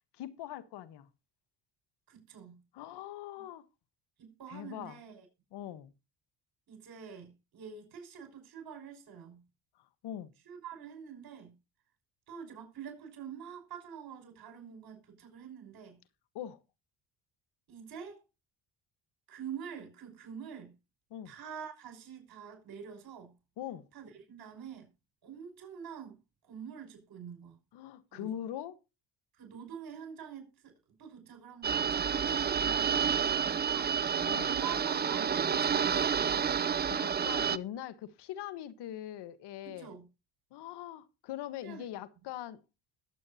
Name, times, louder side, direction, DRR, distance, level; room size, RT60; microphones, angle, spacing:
voice 1, 0.2-1.1 2.7-3.6 4.5-5.0 5.5-5.9 10.0-10.3 16.3-16.6 21.1-21.3 23.6-23.9 27.7-28.8 33.5-33.6 34.3-34.5 36.9-39.9 40.5-42.6, left 11 dB, 75° left, 1.4 m, -42 dB
voice 2, 2.1-2.6 3.4-3.5 4.2-5.3 6.7-9.4 10.5-11.6 12.3-16.0 17.7-18.2 19.3-20.8 21.3-23.3 23.9-24.9 25.2-26.2 26.4-27.6 28.1-28.3 29.3-34.2 34.4-36.6 39.6-40.1 41.6-41.8, right 8 dB, 65° right, 5.7 m, -46 dB
radio receive noise, 31.6-37.6, right 7 dB, 25° right, 0.6 m, -29 dB
21.0 x 8.0 x 2.8 m
cardioid pair, 80°, 41 cm